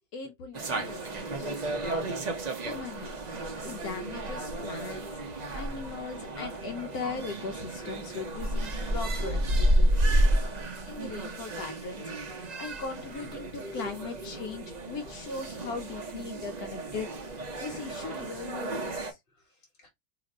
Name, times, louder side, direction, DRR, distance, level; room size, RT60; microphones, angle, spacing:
voice 1, 0.1-3.2 3.6-5.1 5.5-9.9 10.9-19.2, left 4 dB, 70° left, 1.0 m, -39 dB
sound 1, 0.5-19.1, right 1 dB, 75° right, 0.4 m, -31 dB
voice 2, 4.7-5.1 6.2-6.3 9.2-9.4 10.0-10.4 13.6-13.9 14.2-14.7 15.0-15.1 16.3-16.5 19.3-19.9, left 1 dB, 35° left, 1.1 m, -47 dB
2.9 x 2.5 x 4.1 m
omnidirectional pair, 1.8 m